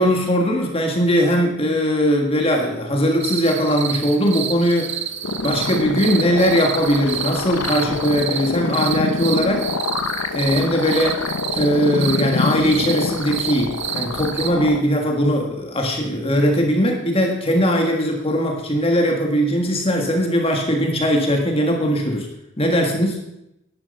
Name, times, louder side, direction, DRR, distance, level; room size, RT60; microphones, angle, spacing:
voice 1, 0.0-5.0 5.4-9.7 10.3-11.2 11.5-22.3 22.6-23.2, equal, 25° left, 2 dB, 1.6 m, -20 dB
sound 1, 3.2-14.5, right 9 dB, 55° right, 0.7 m, -30 dB
sound 2, 5.2-14.8, left 3 dB, 85° left, 0.9 m, -26 dB
11.0 x 10.0 x 5.4 m, 0.86 s
head